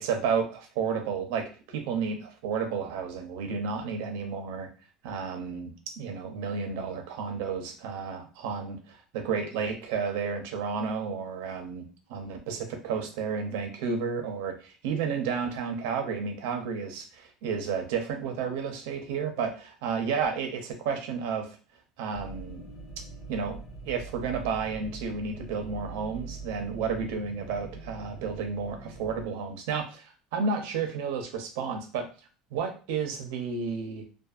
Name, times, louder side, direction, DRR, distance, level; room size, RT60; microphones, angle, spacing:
voice 1, 0.0-4.7 5.0-21.6 22.0-22.6 23.3-23.6 23.9-32.1 32.5-34.0, right 5 dB, 85° right, 5 dB, 0.6 m, -32 dB
sound 1, 22.1-29.3, right 2 dB, 80° left, 1.1 m, -43 dB
2.6 x 2.4 x 2.4 m, 0.36 s
cardioid pair, 175°, 0 cm